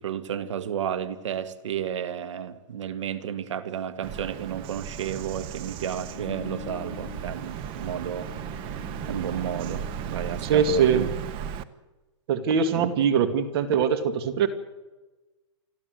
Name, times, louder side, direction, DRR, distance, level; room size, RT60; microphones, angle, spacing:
voice 1, 0.0-11.1 12.7-12.9, right 9 dB, 75° right, 2.1 m, -32 dB
sound 1, 4.0-4.1 5.9-10.5, left 6 dB, 10° left, 6.2 m, -44 dB
Bird vocalization bird call bird song, 4.0-11.6, right 9 dB, 35° right, 1.2 m, -36 dB
voice 2, 10.4-11.1 12.3-14.5, right 7 dB, 55° right, 2.4 m, -22 dB
29.0 x 12.0 x 8.0 m
hypercardioid pair, 135°, 16 cm